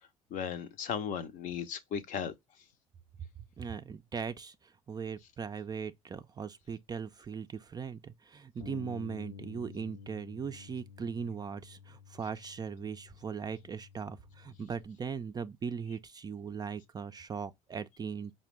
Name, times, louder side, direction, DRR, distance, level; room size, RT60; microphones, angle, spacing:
voice 1, 0.3-2.3, left 7 dB, 50° left, 0.6 m, -36 dB
voice 2, 3.6-4.5 4.9-18.3, right 6 dB, 20° right, 0.3 m, -39 dB
Bass guitar, 8.6-14.8, left 5 dB, 80° left, 0.9 m, -51 dB
4.9 x 2.2 x 3.1 m
figure-of-eight pair, 60°, 18 cm